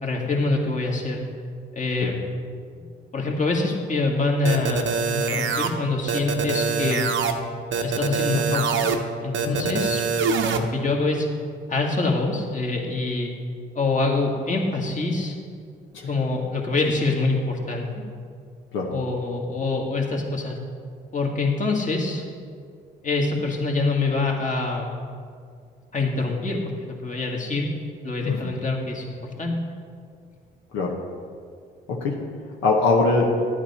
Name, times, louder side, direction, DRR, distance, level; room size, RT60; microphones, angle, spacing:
voice 1, 0.0-1.2 1.7-2.2 3.1-7.1 7.8-8.8 9.2-10.0 10.6-11.3 11.7-13.3 13.7-15.3 16.1-18.0 18.9-20.6 21.1-22.2 23.0-24.9 25.9-27.7 28.0-29.5, left 3 dB, 40° left, 0 dB, 2.1 m, -25 dB
sound 1, 4.4-5.7 6.1-7.3 7.7-8.9 9.3-10.6, right 5 dB, 75° right, 0.9 m, -24 dB
voice 2, 31.9-32.2 32.6-33.4, left 3 dB, 85° left, -1 dB, 1.1 m, -22 dB
11.0 x 8.7 x 4.3 m, 2.1 s
supercardioid pair, 55°, 20 cm